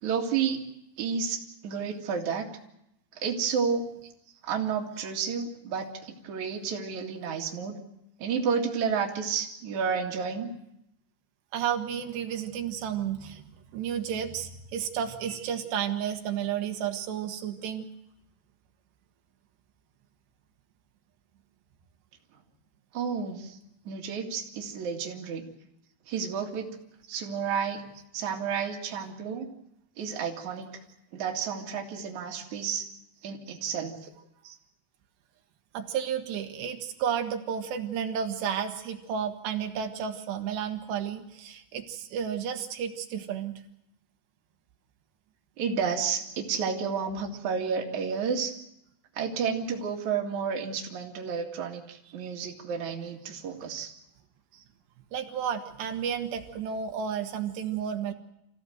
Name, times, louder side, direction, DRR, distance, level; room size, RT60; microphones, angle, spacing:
voice 1, 0.0-0.6 1.0-2.5 3.1-3.8 4.4-7.7 8.2-10.5 22.9-23.6 23.8-25.5 26.1-26.7 27.1-27.8 28.1-29.5 30.0-30.7 31.1-32.9 33.2-34.1 45.6-48.5 49.1-53.9, right 6 dB, 50° right, 0 dB, 3.2 m, -31 dB
voice 2, 11.5-13.4 13.7-17.9 33.5-33.6 34.4-34.6 35.7-43.6 54.5-54.6 55.1-58.1, right 8 dB, 85° right, 4 dB, 3.5 m, -32 dB
26.5 x 16.0 x 7.9 m, 0.83 s
omnidirectional pair, 4.8 m